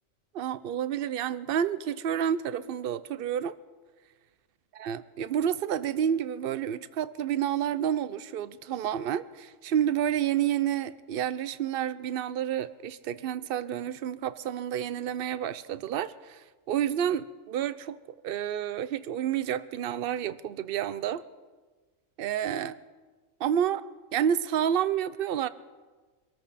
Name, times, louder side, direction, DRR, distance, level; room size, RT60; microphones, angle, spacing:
voice 1, 0.3-3.5 4.8-18.0 18.2-21.2 22.2-22.8 23.4-23.8 24.1-25.5, right 9 dB, 55° right, 15 dB, 0.7 m, -29 dB
25.0 x 13.5 x 4.1 m, 1.3 s
omnidirectional pair, 1.4 m